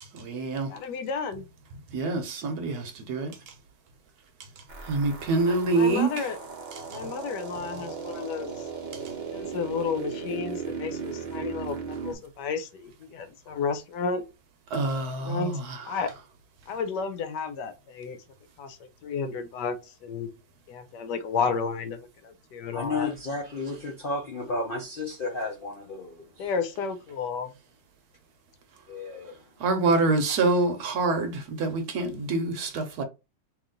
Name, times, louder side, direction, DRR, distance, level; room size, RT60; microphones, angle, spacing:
voice 1, 0.1-0.7 1.9-3.5 4.6-6.3 6.7-7.0 8.9-9.0 14.7-16.0 29.6-33.0, right 3 dB, 65° right, 1.2 m, -26 dB
voice 2, 0.7-1.4 5.5-6.4 6.9-8.7 9.3-14.2 15.2-16.1 16.7-18.2 18.6-20.3 20.7-23.1 26.4-27.5, left 5 dB, 75° left, 1.3 m, -32 dB
sound 1, 4.7-12.1, right 6 dB, 45° right, 0.6 m, -37 dB
voice 3, 22.7-26.5 28.9-29.4 30.3-30.4, left 3 dB, 60° left, 0.5 m, -33 dB
3.1 x 2.9 x 3.7 m
omnidirectional pair, 1.9 m